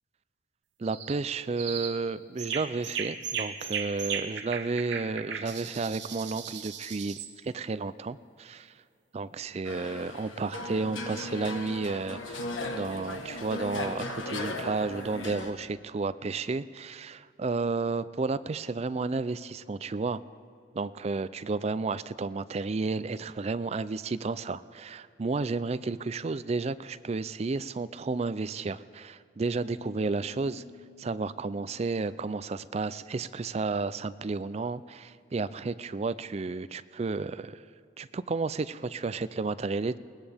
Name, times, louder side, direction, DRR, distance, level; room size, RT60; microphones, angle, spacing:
voice 1, 0.8-8.7 9.1-20.2 20.7-30.6 31.0-37.6 38.0-40.0, right 3 dB, 35° right, 15 dB, 0.4 m, -32 dB
sound 1, 0.8-1.2 1.6-2.0 2.4-7.3, right 7 dB, 65° right, 1.1 m, -36 dB
sound 2, 9.6-15.5, left 2 dB, 85° left, 1.3 m, -37 dB
sound 3, 29.7-32.8, left 2 dB, 10° left, 2.1 m, -53 dB
21.5 x 18.5 x 3.5 m, 2.4 s
head